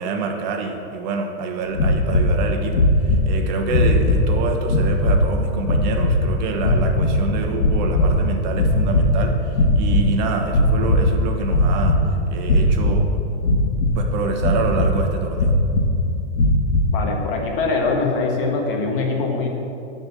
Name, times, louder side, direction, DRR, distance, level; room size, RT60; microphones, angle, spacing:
voice 1, 0.0-13.1 14.0-15.5, right 4 dB, 40° right, 3 dB, 1.1 m, -27 dB
sound 1, 1.7-2.3 2.7-3.3 3.7-4.3 4.6-5.2 5.6-6.2 6.6-7.3 7.5-8.2 8.5-9.2 9.5-10.1 10.5-11.1 11.4-12.0 12.4-13.0 13.4-14.0 14.4-15.0 15.4-15.9 16.3-16.9, left 1 dB, 90° left, 1.9 m, -18 dB
voice 2, 16.9-19.5, left 3 dB, 50° left, 1 dB, 1.8 m, -23 dB
11.5 x 4.4 x 7.4 m, 2.7 s
supercardioid pair, 160°, 35 cm